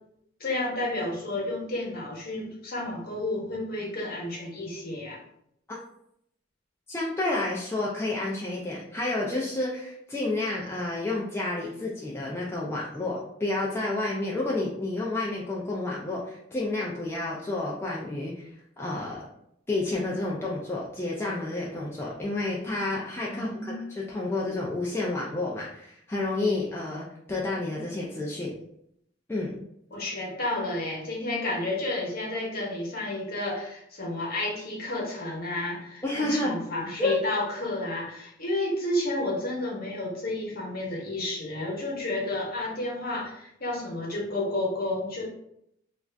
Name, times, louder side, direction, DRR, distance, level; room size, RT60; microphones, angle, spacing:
voice 1, 0.4-5.2 23.3-23.9 29.9-45.3, left 2 dB, 50° left, -3 dB, 0.9 m, -31 dB
voice 2, 6.9-18.5 18.8-19.3 19.7-28.6 29.3-29.5 36.0-36.5 37.0-37.1, left 2 dB, 15° left, -5 dB, 0.3 m, -30 dB
2.4 x 2.4 x 3.2 m, 0.75 s
head